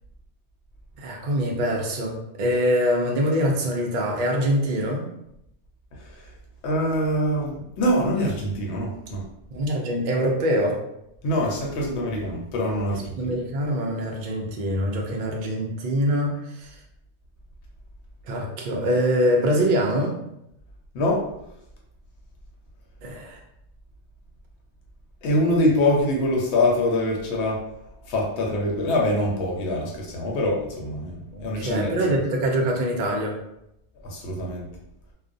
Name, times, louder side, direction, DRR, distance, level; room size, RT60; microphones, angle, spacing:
voice 1, 1.0-5.1 9.5-10.8 12.9-16.8 18.3-20.1 23.0-23.4 31.3-33.4, equal, 60° right, 0 dB, 0.5 m, -24 dB
voice 2, 5.9-6.3 6.6-9.2 11.2-13.3 20.9-21.3 25.2-27.6 28.0-31.9 34.0-34.7, left 1 dB, 80° left, -2 dB, 0.9 m, -24 dB
2.4 x 2.1 x 2.5 m, 0.81 s
omnidirectional pair, 1.1 m